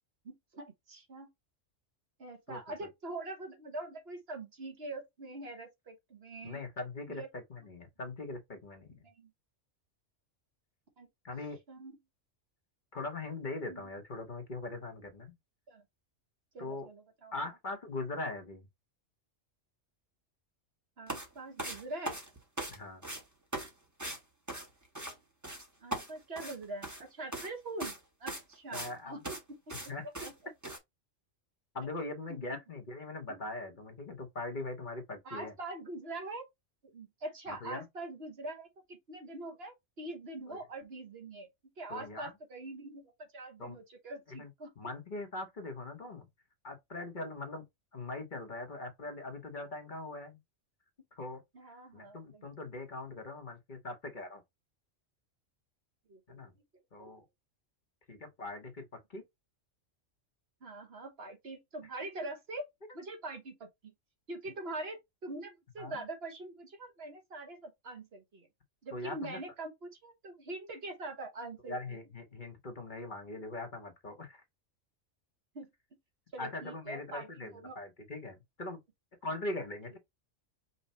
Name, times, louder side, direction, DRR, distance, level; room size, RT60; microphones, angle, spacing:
voice 1, 0.2-1.3 2.2-6.6 7.1-7.3 9.0-9.3 11.0-11.1 11.7-12.0 13.6-13.9 15.7-15.8 16.5-17.3 21.0-22.2 25.8-30.3 32.3-32.6 33.3-33.4 35.2-36.5 36.8-41.5 41.8-44.7 51.5-52.5 56.1-56.4 57.0-57.1 60.6-62.7 62.9-63.7 64.3-68.5 68.8-71.8 75.5-75.7 76.3-77.8 79.2-79.3, right 2 dB, 55° right, 1.4 m, -44 dB
voice 2, 6.4-9.0 11.2-11.6 12.9-15.3 16.6-16.9 17.3-18.7 22.7-23.0 28.7-29.2 29.9-30.1 31.7-35.5 37.5-37.9 40.5-40.6 41.9-42.3 43.6-43.8 44.3-44.5 44.8-46.3 46.6-47.6 47.9-50.4 51.1-54.4 56.3-56.5 56.9-57.2 58.1-58.8 59.1-59.2 65.8-66.0 68.9-69.4 71.7-74.4 76.4-78.8 79.2-80.0, left 2 dB, 40° left, 1.1 m, -41 dB
sound 1, 21.1-21.3 21.6-22.8 23.0-23.2 23.5-23.7 24.0-24.2 24.5-25.1 25.4-25.7 25.9-27.0 27.3-27.5 27.8-28.0 28.3-28.9 29.2-29.4 29.7-29.9 30.1-30.3 30.6-30.8, right 1 dB, 15° right, 1.1 m, -39 dB
5.4 x 2.3 x 4.1 m
omnidirectional pair, 1.3 m